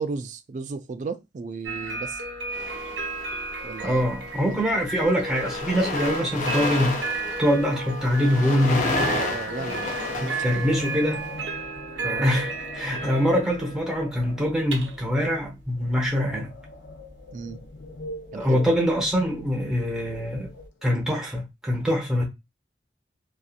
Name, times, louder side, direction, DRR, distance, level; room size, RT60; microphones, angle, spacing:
voice 1, 0.0-2.2 3.6-4.1 4.5-4.6 9.0-10.6 17.3-17.6 18.3-18.6, right 4 dB, 45° right, 0.3 m, -34 dB
sound 1, 1.6-20.7, right 3 dB, 90° right, 0.7 m, -34 dB
sound 2, 2.5-3.5 4.3-4.5 4.8-11.3, left 3 dB, 45° left, 0.7 m, -31 dB
voice 2, 3.8-7.0 7.4-9.1 10.2-11.3 12.0-16.5 18.3-20.5 20.8-22.2, equal, 5° right, 0.8 m, -24 dB
sound 3, 9.7-21.1, left 2 dB, 85° left, 0.5 m, -42 dB
2.7 x 2.3 x 2.4 m
head